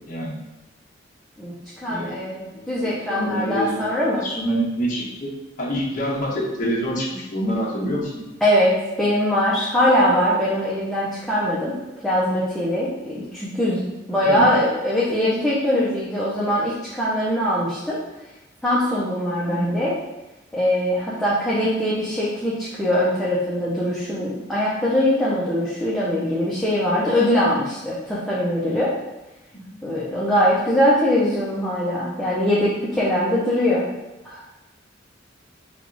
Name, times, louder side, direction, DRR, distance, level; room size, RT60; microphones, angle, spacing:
voice 1, 0.1-0.4 1.8-5.3 5.6-8.2 14.1-14.5 19.4-19.9 29.6-29.9, equal, 45° left, -4 dB, 0.8 m, -27 dB
voice 2, 1.8-4.2 8.4-11.7 12.0-13.8 14.1-18.0 18.6-19.9 20.5-28.9 29.8-33.8 34.2-34.4, left 1 dB, 5° left, -9 dB, 0.6 m, -22 dB
3.4 x 2.4 x 3.7 m, 1.1 s
head